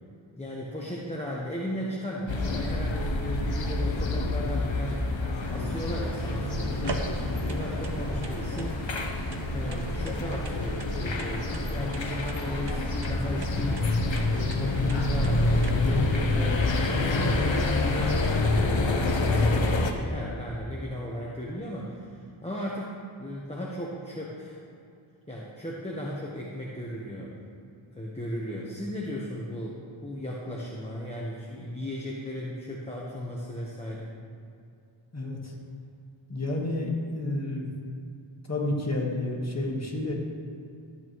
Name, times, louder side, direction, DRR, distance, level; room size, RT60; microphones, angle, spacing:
voice 1, 0.4-7.0 7.5-8.8 9.5-13.9 14.3-18.2 18.5-22.9 23.2-24.6 25.3-27.3 27.9-34.1, equal, 15° left, -5 dB, 1.1 m, -36 dB
sound 1, 2.3-19.9, left 2 dB, 60° left, 0.9 m, -27 dB
sound 2, 5.4-15.7, right 3 dB, 50° right, 0.8 m, -40 dB
voice 2, 35.1-35.5 36.3-37.7 38.5-40.1, left 2 dB, 30° left, -2 dB, 1.6 m, -30 dB
13.5 x 8.4 x 3.1 m, 2.5 s
wide cardioid pair, 55°, 50 cm